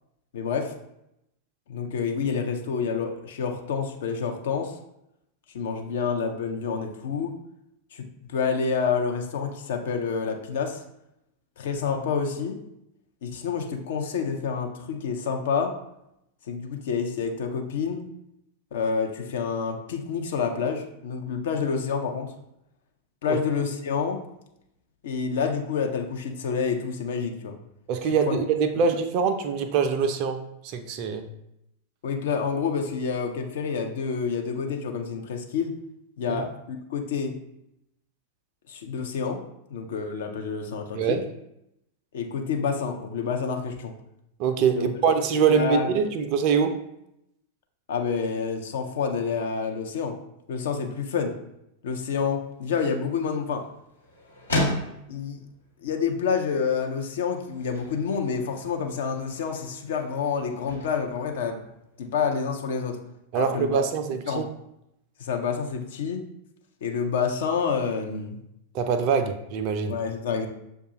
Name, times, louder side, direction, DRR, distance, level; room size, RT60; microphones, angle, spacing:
voice 1, 0.3-0.7 1.7-4.8 5.5-7.3 7.9-8.0 8.3-10.8 11.6-12.6 13.2-15.8 16.5-18.0 18.7-22.3 23.2-24.2 25.0-27.6 28.3-28.4 32.0-35.7 36.2-37.4 38.7-39.4 39.7-41.2 42.1-43.9 44.8-44.9 45.5-45.9 47.9-50.2 50.5-51.3 51.8-53.7 55.1-55.4 55.8-61.6 62.0-63.0 63.3-63.8 64.3-64.5 65.2-66.2 66.8-68.4 69.9-70.5, left 6 dB, 60° left, 3 dB, 0.5 m, -28 dB
voice 2, 27.9-31.3 36.3-36.4 40.9-41.2 44.4-46.8 63.3-64.5 68.7-70.0, right 6 dB, 45° right, 8 dB, 0.4 m, -24 dB
sound 1, 52.5-62.2, left 1 dB, 80° left, 1.2 m, -36 dB
6.5 x 2.3 x 2.8 m, 0.82 s
figure-of-eight pair, 90°, 0 cm